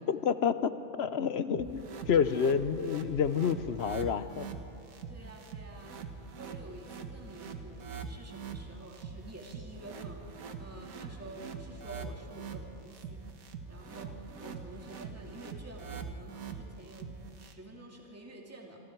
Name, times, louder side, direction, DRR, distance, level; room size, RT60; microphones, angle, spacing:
voice 1, 0.1-0.7 1.0-4.5, left 7 dB, 55° left, 12 dB, 0.8 m, -29 dB
sound 1, 1.5-17.5, right 5 dB, 70° right, 1.7 m, -43 dB
voice 2, 5.1-5.9 6.4-10.2 10.6-13.2 13.7-18.8, right 2 dB, 10° right, -1 dB, 2.3 m, -49 dB
26.5 x 25.5 x 4.6 m, 2.9 s
omnidirectional pair, 1.6 m